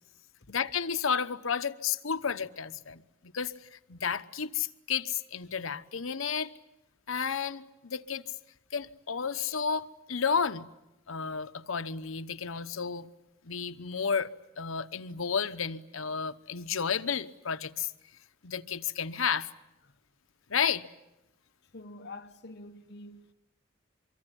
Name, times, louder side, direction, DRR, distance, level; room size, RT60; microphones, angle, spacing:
voice 1, 0.5-6.5 7.1-8.2 8.7-10.6 11.1-13.1 13.4-14.3 14.6-17.9 18.4-19.5 20.5-20.8, left 6 dB, 85° left, 1.0 m, -32 dB
voice 2, 21.7-23.3, left 2 dB, 55° left, 1.2 m, -46 dB
24.5 x 24.0 x 9.9 m
head